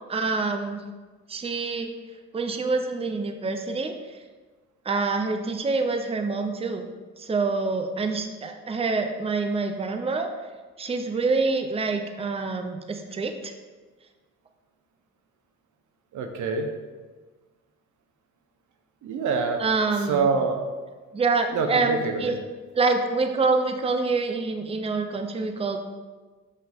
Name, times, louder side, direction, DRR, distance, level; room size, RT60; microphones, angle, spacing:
voice 1, 0.1-0.8 1.3-1.9 2.3-3.9 4.9-6.9 7.2-10.3 10.8-13.5 19.6-20.3 21.1-22.3 22.8-25.8, right 3 dB, 20° right, 6 dB, 0.5 m, -26 dB
voice 2, 16.1-16.7 19.0-19.6 20.1-20.6 21.5-22.3, right 5 dB, 85° right, 5 dB, 0.8 m, -25 dB
5.7 x 5.5 x 3.5 m, 1.3 s
cardioid pair, 95°, 29 cm